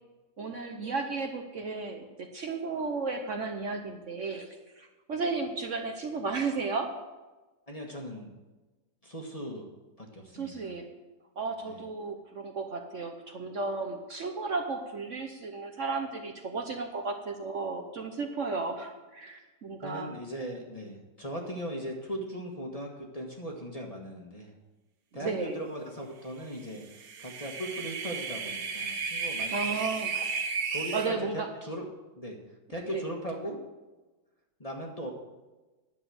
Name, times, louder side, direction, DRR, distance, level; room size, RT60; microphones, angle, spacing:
voice 1, 0.4-6.9 10.3-10.8 11.4-20.1 25.1-25.6 29.5-30.4 30.9-31.5 32.9-33.0, right 4 dB, 50° right, 4 dB, 1.1 m, -34 dB
voice 2, 7.7-8.3 9.0-9.7 10.0-10.7 11.6-11.8 19.8-24.5 25.1-26.8 27.2-29.8 30.7-31.2 31.6-31.9 32.2-32.4 32.7-33.6 34.6-35.1, equal, 25° left, 1 dB, 1.5 m, -38 dB
sound 1, 26.8-31.1, right 5 dB, 75° right, 1.6 m, -34 dB
11.0 x 7.3 x 7.8 m, 1.2 s
omnidirectional pair, 1.8 m